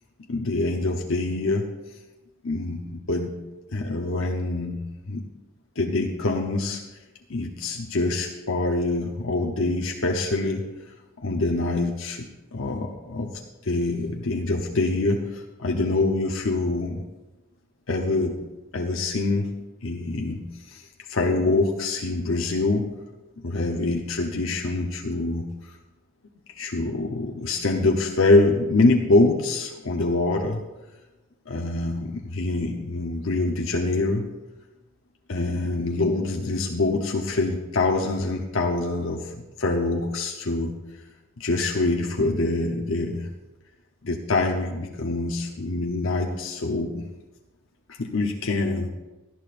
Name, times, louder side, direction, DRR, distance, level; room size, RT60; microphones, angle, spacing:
voice 1, 0.3-1.6 2.4-3.3 3.7-5.2 5.8-6.8 7.3-10.6 11.2-17.0 17.9-18.4 18.7-19.5 19.8-22.9 23.4-25.5 26.5-30.6 31.5-34.3 35.3-40.7 41.4-43.3 44.0-47.0 47.9-48.9, left 2 dB, 75° left, 1 dB, 0.9 m, -25 dB
17.5 x 12.0 x 2.6 m, 1.1 s
head